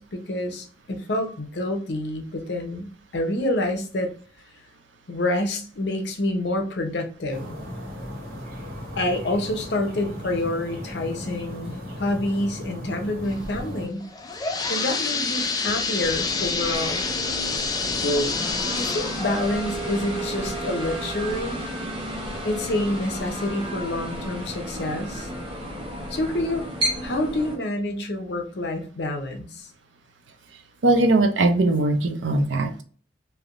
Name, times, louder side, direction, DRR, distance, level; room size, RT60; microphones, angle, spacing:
voice 1, 0.0-4.1 5.1-7.6 9.0-14.0 14.7-17.1 18.0-18.3 18.8-21.6 22.4-25.3 26.1-26.7 27.0-29.7, left 1 dB, 65° left, 0.7 m, -27 dB
sound 1, 7.3-13.9, equal, 50° right, 1.5 m, -36 dB
sound 2, 14.0-21.6 22.1-22.2 22.9-23.0 23.4-23.5, left 4 dB, 20° left, 0.3 m, -28 dB
sound 3, 15.9-27.6, right 1 dB, 25° right, 0.8 m, -32 dB
voice 2, 30.8-32.8, right 2 dB, 85° right, 0.6 m, -20 dB
3.3 x 2.7 x 2.5 m
head